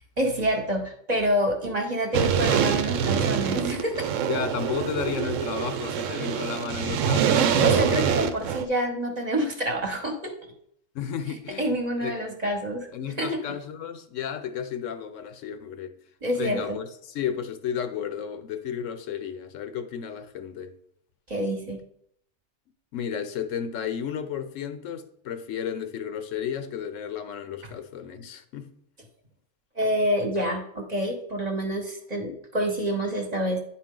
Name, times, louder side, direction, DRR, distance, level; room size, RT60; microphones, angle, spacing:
voice 1, 0.2-4.0 7.6-10.3 11.6-12.9 13.2-13.5 16.2-16.8 21.3-21.8 29.8-33.6, equal, 35° right, 1.0 m, -27 dB
sound 1, 2.1-8.6, right 8 dB, 75° right, 0.9 m, -25 dB
voice 2, 4.3-8.0 10.9-12.1 12.9-15.9 16.4-20.8 22.9-28.7, left 8 dB, 75° left, 1.0 m, -33 dB
9.7 x 4.2 x 3.8 m
omnidirectional pair, 1.4 m